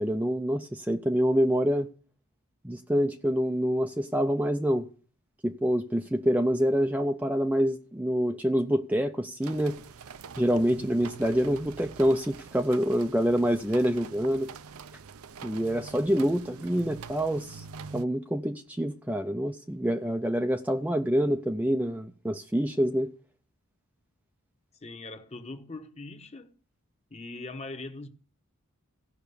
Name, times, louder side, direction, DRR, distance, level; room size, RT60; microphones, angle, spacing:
voice 1, 0.0-1.9 2.6-4.9 5.4-9.8 10.4-14.5 15.4-17.6 17.9-23.1, equal, 5° right, 0.5 m, -26 dB
sound 1, 9.4-18.0, right 5 dB, 70° right, 0.6 m, -45 dB
voice 2, 24.7-26.5 27.1-28.1, left 2 dB, 30° left, 1.1 m, -41 dB
16.0 x 5.8 x 6.8 m
head